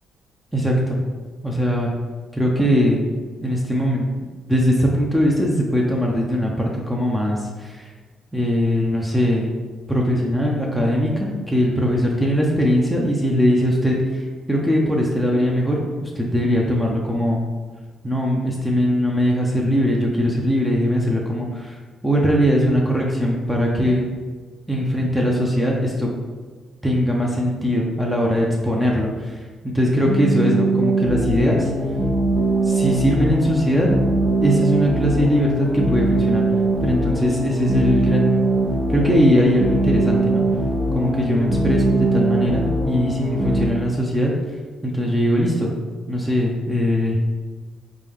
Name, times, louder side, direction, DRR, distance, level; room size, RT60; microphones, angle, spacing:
voice 1, 0.5-1.0 1.4-1.9 2.3-3.0 3.4-4.1 4.4-7.9 8.3-9.5 9.9-17.5 18.0-21.8 22.0-24.0 24.7-26.1 26.8-29.4 29.7-31.7 32.6-33.9 34.4-36.4 36.8-38.5 38.9-40.4 40.9-44.3 44.8-45.7 46.1-47.2, equal, 5° right, -2 dB, 0.6 m, -20 dB
sound 1, 30.1-43.7, right 2 dB, 30° right, 1.0 m, -21 dB
4.8 x 2.3 x 3.6 m, 1.4 s
cardioid pair, 90°, 0 cm